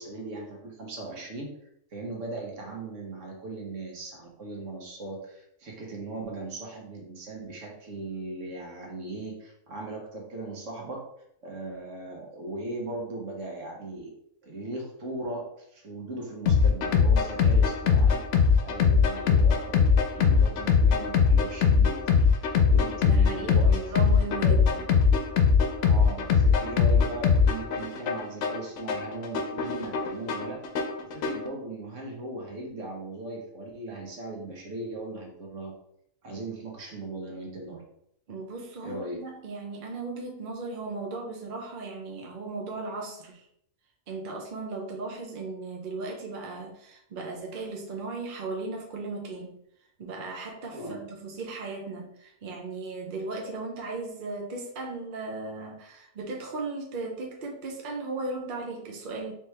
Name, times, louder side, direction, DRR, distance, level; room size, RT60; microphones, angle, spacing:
voice 1, 0.0-1.5 1.9-11.0 11.4-14.1 14.4-15.5 15.7-18.2 18.6-24.6 24.9-25.2 25.8-30.6 31.0-35.7 36.2-37.8 38.8-39.2 50.7-51.0, right 2 dB, 65° right, 0 dB, 1.5 m, -38 dB
sound 1, 16.5-31.5, left 6 dB, 65° left, 0.9 m, -22 dB
voice 2, 22.9-24.8 38.3-43.5 44.1-49.6 50.0-59.3, right 3 dB, 50° right, 0 dB, 0.7 m, -36 dB
4.3 x 3.4 x 3.2 m, 0.73 s
omnidirectional pair, 1.4 m